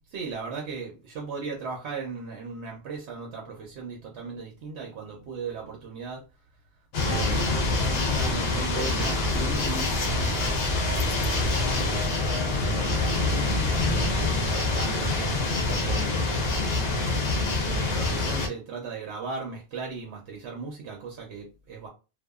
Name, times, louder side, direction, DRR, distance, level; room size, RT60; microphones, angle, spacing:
voice 1, 0.1-6.2 7.0-12.0 12.4-12.6 13.0-16.9 17.6-21.9, right 5 dB, 80° right, 0 dB, 0.9 m, -38 dB
sound 1, 6.9-18.5, left 2 dB, 70° left, 0.9 m, -26 dB
sound 2, 7.1-14.7, right 1 dB, 45° left, 1.5 m, -39 dB
2.7 x 2.2 x 2.2 m, 0.31 s
omnidirectional pair, 1.1 m